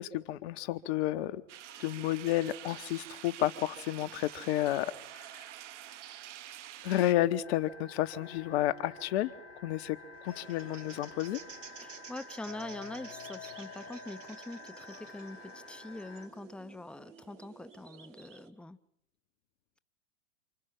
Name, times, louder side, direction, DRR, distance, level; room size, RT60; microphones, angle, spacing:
voice 1, 0.0-1.4 1.8-4.9 5.2-5.3 6.8-9.3 9.6-10.0 10.2-11.4, left 14 dB, 55° left, 13 dB, 1.7 m, -31 dB
sound 1, 1.5-7.1, right 12 dB, 70° right, 1.2 m, -47 dB
sound 2, 7.4-16.3, left 4 dB, 80° left, 4.0 m, -49 dB
sound 3, 10.3-18.5, right 6 dB, 90° right, 2.9 m, -52 dB
voice 2, 11.8-18.8, left 2 dB, 5° left, 13 dB, 0.9 m, -44 dB
29.0 x 27.5 x 5.8 m, 0.77 s
hypercardioid pair, 105°, 37 cm